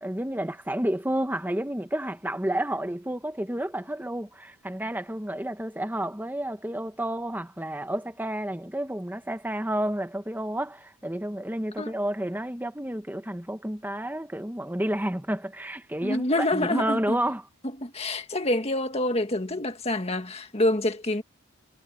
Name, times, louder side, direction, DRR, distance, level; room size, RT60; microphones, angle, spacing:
voice 1, 0.0-17.5, right 1 dB, 10° right, 1.2 m, -30 dB
voice 2, 16.0-17.2 17.8-21.2, left 1 dB, 30° left, 1.8 m, -27 dB
head